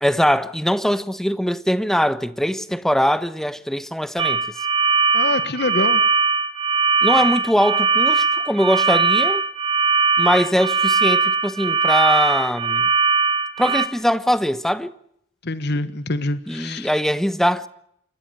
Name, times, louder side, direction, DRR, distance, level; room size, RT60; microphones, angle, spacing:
voice 1, 0.0-4.4 7.0-9.4 10.2-12.9 13.6-14.9 16.5-17.7, equal, ahead, 1.1 m, -21 dB
sound 1, 4.2-13.9, right 4 dB, 30° right, 2.5 m, -20 dB
voice 2, 5.1-6.0 15.4-16.9, left 2 dB, 60° left, 1.5 m, -25 dB
27.5 x 14.5 x 9.3 m
head